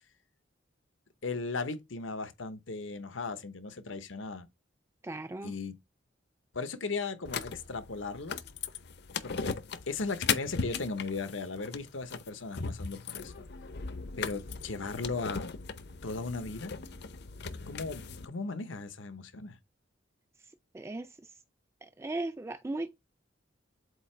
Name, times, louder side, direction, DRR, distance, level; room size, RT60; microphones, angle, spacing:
voice 1, 1.2-4.5 5.4-5.8 6.5-8.4 9.2-9.6 9.9-13.5 14.2-15.5 16.0-16.7 17.7-19.6, left 3 dB, 85° left, 1.0 m, -37 dB
voice 2, 5.0-5.5 20.7-21.2 21.8-23.0, right 2 dB, 15° right, 0.4 m, -37 dB
sound 1, 7.2-18.2, left 5 dB, 60° left, 0.7 m, -38 dB
7.9 x 2.8 x 4.4 m
head